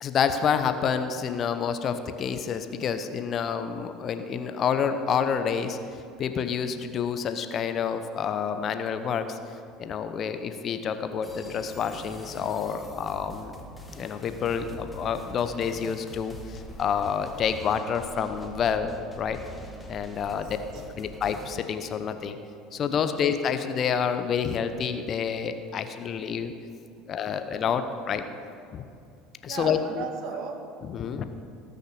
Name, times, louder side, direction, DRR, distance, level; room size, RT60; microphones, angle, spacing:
voice 1, 0.0-5.8 6.2-9.4 9.8-13.5 13.9-19.4 19.9-20.6 21.0-22.4 22.7-26.5 27.1-28.2 28.7-28.8 29.4-30.1 30.8-31.2, left 7 dB, 40° left, 9 dB, 0.9 m, -28 dB
sound 1, 11.2-21.5, equal, 10° left, 2.3 m, -44 dB
voice 2, 20.3-21.2 23.0-23.2 27.0-27.1 29.5-30.6, right 6 dB, 55° right, 5 dB, 1.8 m, -38 dB
18.5 x 6.6 x 7.0 m, 2.6 s
figure-of-eight pair, 65°, 0 cm